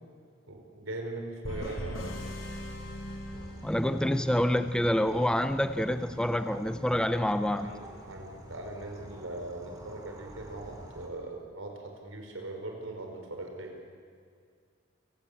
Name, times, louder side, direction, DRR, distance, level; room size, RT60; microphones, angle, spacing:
voice 1, 0.5-2.2 7.6-13.7, right 2 dB, 85° right, 3 dB, 5.0 m, -40 dB
sound 1, 1.4-4.2, equal, 85° left, 5.1 m, -39 dB
sound 2, 3.3-11.1, equal, 20° right, 3.2 m, -48 dB
voice 2, 3.6-7.7, left 1 dB, 5° left, 10 dB, 0.5 m, -27 dB
28.5 x 17.0 x 8.7 m, 2.2 s
head